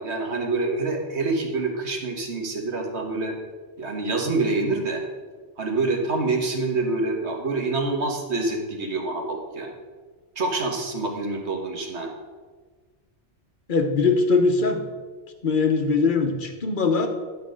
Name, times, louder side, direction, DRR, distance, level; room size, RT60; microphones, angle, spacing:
voice 1, 0.0-3.4 3.8-5.1 5.6-9.7 10.4-12.1, right 3 dB, 70° right, 2 dB, 1.7 m, -26 dB
voice 2, 13.7-14.8 15.4-17.1, left 4 dB, 45° left, 6 dB, 1.1 m, -21 dB
11.0 x 4.8 x 6.2 m, 1.4 s
omnidirectional pair, 1.2 m